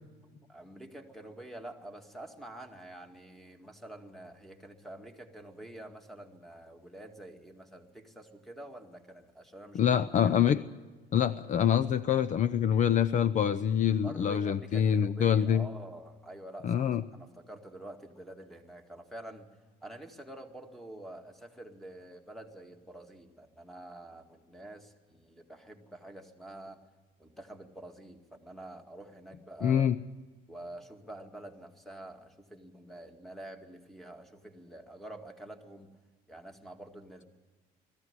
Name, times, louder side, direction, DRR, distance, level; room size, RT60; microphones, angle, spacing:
voice 1, 0.5-9.8 10.2-10.6 14.0-16.8 17.1-19.5 19.8-26.9 27.2-29.9 30.5-35.9 36.3-37.2, right 1 dB, ahead, 5 dB, 2.0 m, -47 dB
voice 2, 9.7-10.6 11.1-15.7 16.6-17.0 29.6-30.0, left 9 dB, 45° left, 15 dB, 0.6 m, -25 dB
20.5 x 14.5 x 9.7 m, 1.3 s
cardioid pair, 110°, 17 cm